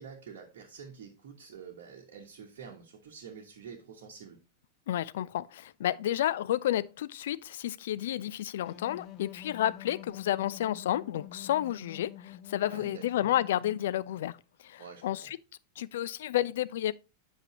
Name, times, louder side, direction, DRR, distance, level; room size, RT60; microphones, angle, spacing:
voice 1, 0.0-4.4 12.5-13.3 14.8-15.0, right 6 dB, 55° right, 1.1 m, -47 dB
voice 2, 4.9-14.4 14.6-15.4 15.8-16.9, left 12 dB, 55° left, 0.3 m, -31 dB
sound 1, 8.6-14.3, left 10 dB, 35° left, 0.8 m, -48 dB
8.0 x 5.4 x 3.0 m
figure-of-eight pair, 90°, 0 cm